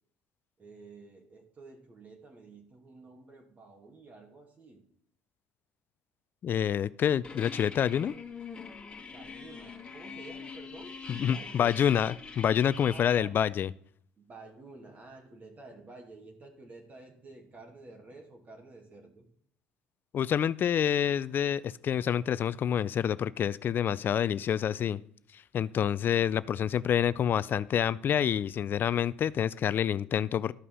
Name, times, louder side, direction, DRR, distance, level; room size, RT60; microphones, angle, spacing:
voice 1, 0.6-4.9 9.1-11.8 12.8-13.4 14.2-19.3, right 3 dB, 35° right, 2 dB, 2.5 m, -51 dB
voice 2, 6.4-8.1 11.1-13.7 20.1-25.0 25.3-30.5, left 9 dB, 45° left, 19 dB, 0.4 m, -27 dB
sound 1, 7.2-13.2, left 5 dB, 20° left, 2.1 m, -43 dB
13.0 x 5.5 x 5.4 m, 0.63 s
supercardioid pair, 85°, 5 cm